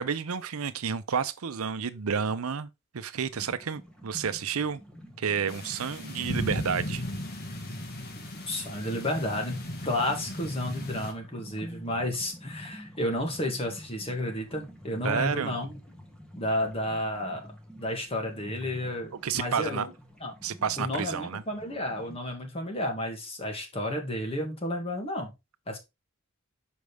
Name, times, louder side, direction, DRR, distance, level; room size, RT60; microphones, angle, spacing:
voice 1, 0.0-2.7 2.9-4.8 5.2-7.0 15.0-15.5 19.2-19.9 20.4-21.4, right 6 dB, 85° right, 0.6 m, -30 dB
sound 1, 3.3-22.2, equal, 5° left, 1.3 m, -48 dB
sound 2, 5.5-11.1, left 1 dB, 50° left, 1.4 m, -36 dB
voice 2, 8.5-15.8 16.4-17.5 17.8-19.9 20.2-20.3 20.8-25.3 25.7-25.8, left 1 dB, 30° left, 1.9 m, -32 dB
6.4 x 5.2 x 3.4 m
head